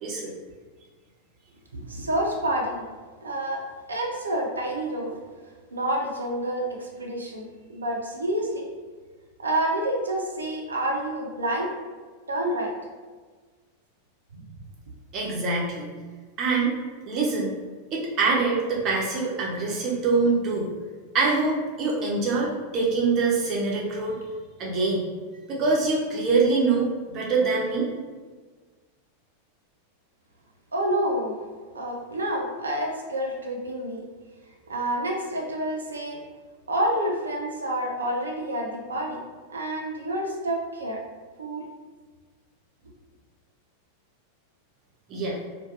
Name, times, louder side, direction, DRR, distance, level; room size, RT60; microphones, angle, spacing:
voice 1, 1.7-2.8 3.2-3.6 3.9-5.1 5.7-8.7 9.4-11.7 12.3-12.7 14.3-14.5 30.7-31.3 31.7-34.0 34.7-36.2 36.7-39.2 39.5-41.0 41.4-41.7, right 1 dB, 75° right, 0 dB, 0.5 m, -28 dB
voice 2, 15.1-15.9 16.4-16.8 17.1-17.5 17.9-20.7 21.1-24.2 24.6-25.1 25.5-27.9 45.1-45.4, right 4 dB, 35° right, -3 dB, 0.6 m, -24 dB
2.4 x 2.2 x 2.7 m, 1.4 s
figure-of-eight pair, 90°, 0 cm